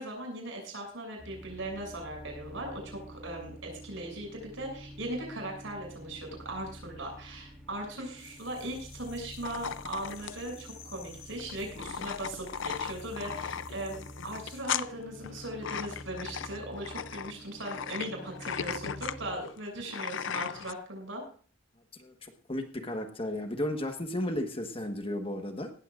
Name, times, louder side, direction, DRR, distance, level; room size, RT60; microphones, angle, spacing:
voice 1, 0.0-21.2, right 1 dB, 65° right, 2 dB, 7.0 m, -39 dB
sound 1, 1.2-19.4, equal, 5° right, 2.2 m, -48 dB
sound 2, 8.2-14.6, left 7 dB, 90° left, 5.4 m, -54 dB
sound 3, 9.4-20.7, left 7 dB, 60° left, 0.5 m, -37 dB
voice 2, 22.0-25.7, left 1 dB, 25° left, 6 dB, 1.3 m, -34 dB
18.5 x 14.5 x 2.5 m, 0.43 s
head